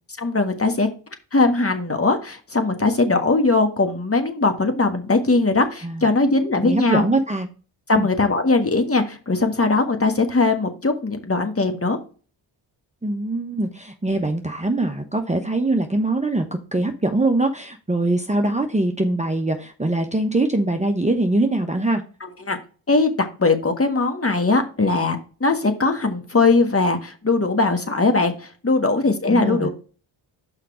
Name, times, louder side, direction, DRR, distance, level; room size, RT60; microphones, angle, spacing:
voice 1, 0.2-0.9 1.3-7.1 7.9-12.0 22.4-22.6 22.9-29.7, left 3 dB, 30° left, 6 dB, 1.5 m, -20 dB
voice 2, 6.6-7.5 8.0-8.1 13.0-16.4 16.7-22.0 29.3-29.7, right 2 dB, 15° right, 5 dB, 0.9 m, -22 dB
5.7 x 5.0 x 4.9 m, 0.37 s
supercardioid pair, 40°, 49 cm